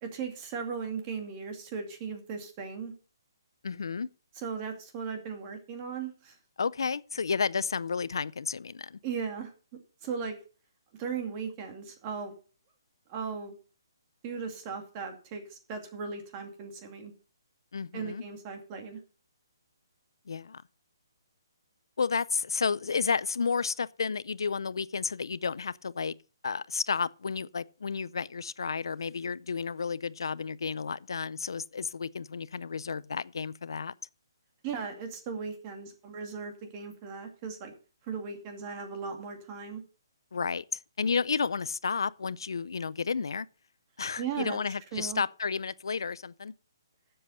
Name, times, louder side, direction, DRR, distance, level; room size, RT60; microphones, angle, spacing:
voice 1, 0.0-2.9 4.3-6.3 9.0-9.5 10.0-10.4 11.0-12.3 13.1-13.5 14.2-17.1 17.9-19.0 34.6-37.7 38.1-39.8 44.2-44.6 44.9-45.2, right 6 dB, 25° right, 2.4 m, -37 dB
voice 2, 3.6-4.1 6.6-9.0 17.7-18.2 20.3-20.6 22.0-26.1 26.4-33.9 40.3-40.6 41.0-43.5 44.0-46.5, left 5 dB, 80° left, 0.5 m, -32 dB
12.0 x 7.7 x 5.5 m
hypercardioid pair, 165°, 2 cm